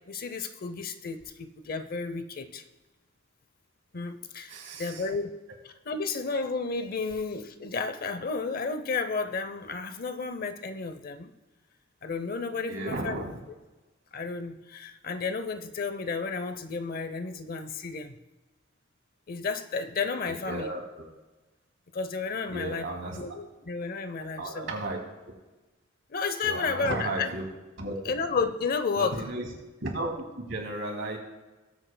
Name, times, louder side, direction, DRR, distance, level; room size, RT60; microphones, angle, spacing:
voice 1, 0.1-2.6 3.9-4.5 4.8-5.4 5.9-11.3 12.0-13.2 14.1-18.2 19.3-20.7 21.9-22.9 23.1-24.7 26.1-27.3 28.1-29.2, left 4 dB, 50° left, 10 dB, 0.7 m, -32 dB
voice 2, 4.5-5.1 12.7-13.4 20.3-21.0 22.5-23.2 24.4-25.0 26.4-27.5 27.8-28.1 29.0-29.5 29.8-30.1 30.4-31.2, right 2 dB, 70° right, 1 dB, 2.6 m, -34 dB
19.0 x 8.2 x 2.2 m, 1.2 s
head